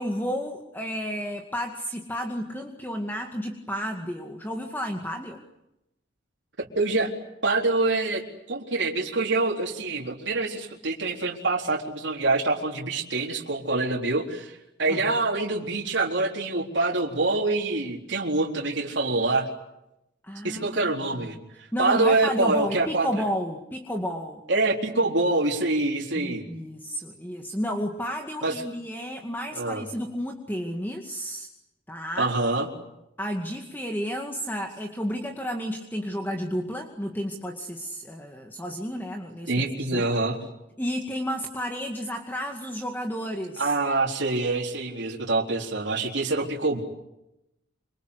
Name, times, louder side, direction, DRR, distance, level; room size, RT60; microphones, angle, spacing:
voice 1, 0.0-5.4 14.9-15.2 20.2-20.9 21.3-21.4 21.7-24.4 26.2-31.5 31.9-32.3 33.2-39.5 39.8-40.2 40.8-43.7, equal, 10° left, 2 dB, 2.2 m, -32 dB
voice 2, 6.6-7.1 7.4-8.2 8.5-19.5 20.4-23.1 24.5-26.4 28.4-28.5 29.5-29.8 32.2-32.7 39.5-40.4 43.6-46.8, right 2 dB, 65° right, -2 dB, 4.1 m, -25 dB
27.0 x 27.0 x 8.3 m, 0.88 s
head